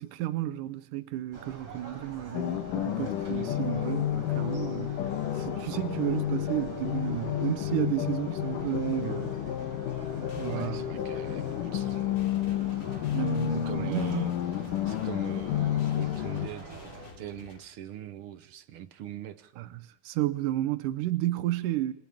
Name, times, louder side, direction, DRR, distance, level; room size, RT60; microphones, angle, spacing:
voice 1, 0.0-5.0 5.3-9.3 10.4-10.8 13.1-14.3 19.6-21.9, right 15 dB, 85° right, 2.5 m, -32 dB
sound 1, 1.3-17.1, right 3 dB, 45° right, 5.5 m, -45 dB
sound 2, 2.3-16.5, left 12 dB, 90° left, 2.8 m, -31 dB
sound 3, 10.3-17.6, left 5 dB, 70° left, 4.2 m, -51 dB
voice 2, 10.5-12.2 13.6-19.5, right 10 dB, 70° right, 1.3 m, -43 dB
28.5 x 25.5 x 3.6 m
omnidirectional pair, 3.6 m